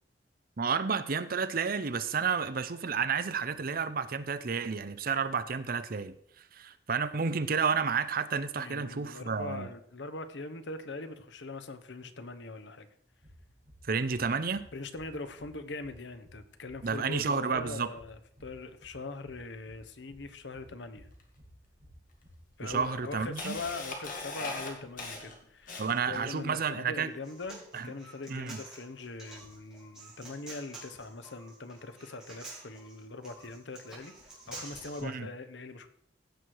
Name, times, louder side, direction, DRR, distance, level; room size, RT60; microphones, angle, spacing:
voice 1, 0.6-9.7 13.8-14.7 16.8-17.9 22.6-23.6 25.8-27.1 27.7-27.9 28.3-28.6 35.0-35.3, right 5 dB, 55° right, 13 dB, 0.7 m, -31 dB
voice 2, 8.6-12.9 14.7-21.1 22.6-25.8 26.1-34.1 34.5-35.9, left 3 dB, 85° left, 9 dB, 1.0 m, -42 dB
sound 1, 13.0-23.8, equal, 35° right, 5.5 m, -57 dB
Camera, 21.2-21.3 22.2-22.3 22.7-26.2, left 3 dB, 50° left, 2.1 m, -39 dB
Human voice, 27.2-35.0, right 2 dB, 5° right, 4.0 m, -49 dB
15.5 x 6.2 x 4.8 m, 0.71 s
head